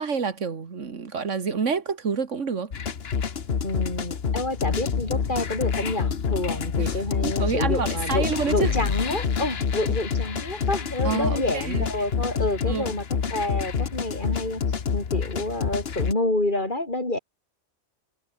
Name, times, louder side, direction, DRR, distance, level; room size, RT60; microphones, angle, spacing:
voice 1, 0.0-2.7 6.8-8.7 11.0-11.9 12.7-12.9, right 5 dB, 85° right, 2.1 m, -28 dB
sound 1, 2.7-16.1, left 6 dB, 55° left, 1.4 m, -27 dB
voice 2, 3.6-14.6 14.9-17.2, left 2 dB, 40° left, 5.2 m, -28 dB
omnidirectional pair, 1.2 m